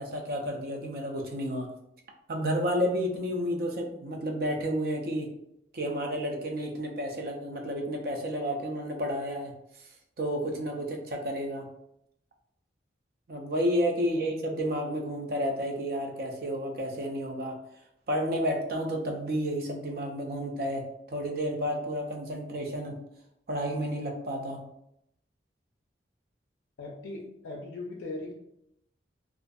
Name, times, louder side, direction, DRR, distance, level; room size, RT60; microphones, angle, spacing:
voice 1, 0.0-1.7 2.3-5.3 5.7-9.5 10.2-11.7 13.3-17.5 18.1-23.0 23.5-24.6, equal, 50° right, 2 dB, 0.4 m, -31 dB
voice 2, 26.8-28.3, left 2 dB, 80° left, -1 dB, 0.4 m, -39 dB
2.4 x 2.3 x 2.5 m, 0.77 s
head